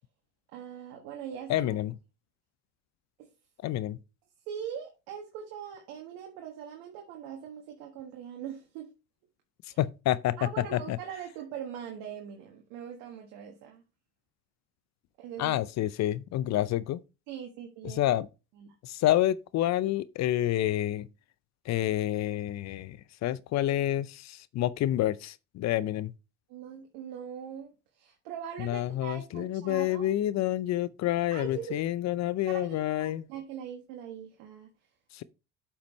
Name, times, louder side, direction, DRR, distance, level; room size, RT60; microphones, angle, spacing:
voice 1, 0.5-1.7 3.2-3.3 4.5-8.9 9.7-9.8 10.4-13.8 15.2-15.7 17.3-18.0 18.6-18.7 26.5-30.1 31.3-31.8 32.5-34.7, right 8 dB, 70° right, 1.6 m, -41 dB
voice 2, 1.5-1.9 3.6-4.0 9.8-10.4 10.7-11.0 15.4-17.0 17.8-18.3 18.8-21.1 21.7-26.1 28.6-33.3 35.1-35.2, left 13 dB, 50° left, 0.6 m, -28 dB
8.2 x 5.7 x 3.1 m
hypercardioid pair, 75°, 36 cm